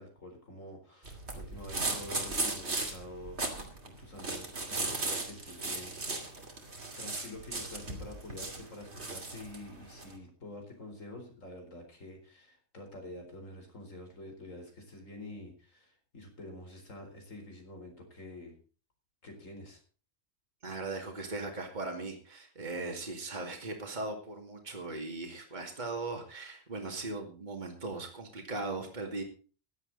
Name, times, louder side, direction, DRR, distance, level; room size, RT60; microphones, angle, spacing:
voice 1, 0.0-6.4 7.0-18.6 19.2-19.8, left 1 dB, 80° left, 4 dB, 4.5 m, -47 dB
sound 1, 1.0-10.1, right 2 dB, 55° right, 2.9 m, -37 dB
voice 2, 20.6-29.2, right 3 dB, 35° right, 2 dB, 2.5 m, -38 dB
16.0 x 11.0 x 4.0 m, 0.38 s
omnidirectional pair, 1.3 m